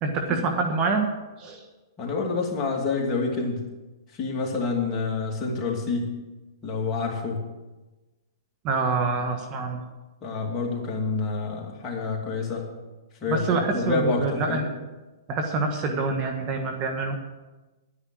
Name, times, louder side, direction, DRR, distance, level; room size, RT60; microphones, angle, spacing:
voice 1, 0.0-1.1 1.4-1.6 8.6-9.8 13.3-14.7 15.3-17.2, right 4 dB, 30° right, 4 dB, 1.5 m, -26 dB
voice 2, 2.0-3.6 4.1-6.1 6.6-7.4 10.2-12.7 13.2-14.7, left 4 dB, 25° left, -2 dB, 2.7 m, -28 dB
11.0 x 10.5 x 6.3 m, 1.1 s
hypercardioid pair, 140°, 2 cm